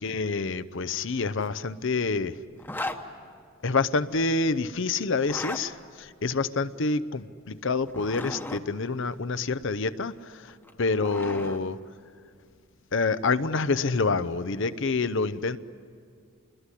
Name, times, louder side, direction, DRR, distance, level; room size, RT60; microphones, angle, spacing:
voice 1, 0.0-2.4 3.6-11.8 12.9-15.6, left 4 dB, 65° left, 13 dB, 0.7 m, -27 dB
Zipper (clothing), 2.6-3.0 5.1-5.6 7.8-8.6 10.5-11.6, left 1 dB, 10° left, 1.1 m, -36 dB
28.0 x 21.0 x 10.0 m, 2.2 s
head